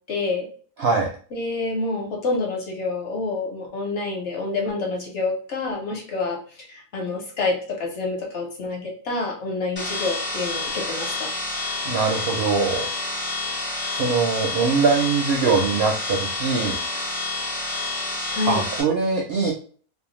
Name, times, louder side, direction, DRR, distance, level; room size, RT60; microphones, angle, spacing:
voice 1, 0.1-0.5 1.3-6.4 6.7-11.3 18.3-18.6, left 3 dB, 60° left, -1 dB, 0.9 m, -27 dB
voice 2, 0.8-1.1 11.8-12.9 13.9-16.8 18.5-19.5, right 4 dB, 65° right, -1 dB, 0.6 m, -22 dB
sound 1, 9.8-18.8, left 2 dB, 15° left, 0.4 m, -29 dB
2.5 x 2.0 x 3.0 m, 0.44 s
omnidirectional pair, 1.5 m